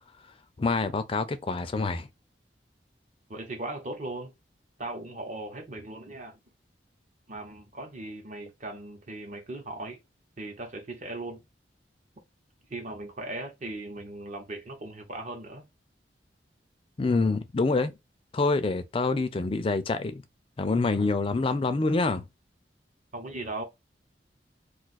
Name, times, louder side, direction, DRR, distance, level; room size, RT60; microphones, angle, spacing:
voice 1, 0.6-2.1 17.0-17.9 18.3-20.2 20.6-22.2, left 3 dB, 30° left, 0.4 m, -26 dB
voice 2, 3.3-4.3 4.8-6.4 7.3-10.0 10.4-11.4 12.7-15.6 23.1-23.6, right 2 dB, 45° right, 0.9 m, -38 dB
2.5 x 2.4 x 4.0 m
head